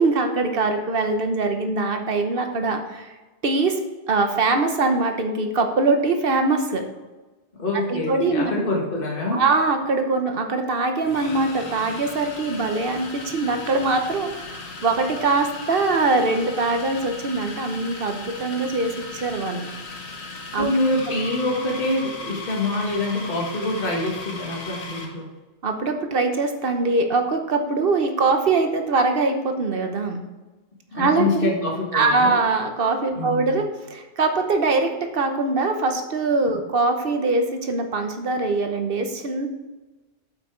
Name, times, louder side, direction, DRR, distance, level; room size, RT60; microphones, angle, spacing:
voice 1, 0.0-3.1 3.4-3.8 4.1-6.8 7.9-8.5 9.3-19.7 20.5-20.7 25.6-30.2 30.9-31.5 31.9-33.6 33.9-39.5, right 3 dB, 55° right, 5 dB, 1.2 m, -22 dB
voice 2, 7.5-9.4 20.5-25.3 30.9-32.4 33.1-33.6, left 2 dB, 55° left, -2 dB, 1.8 m, -25 dB
sound 1, 9.8-9.9 11.0-25.2, left 3 dB, 70° left, 1.5 m, -37 dB
8.0 x 5.8 x 4.6 m, 1.2 s
omnidirectional pair, 1.1 m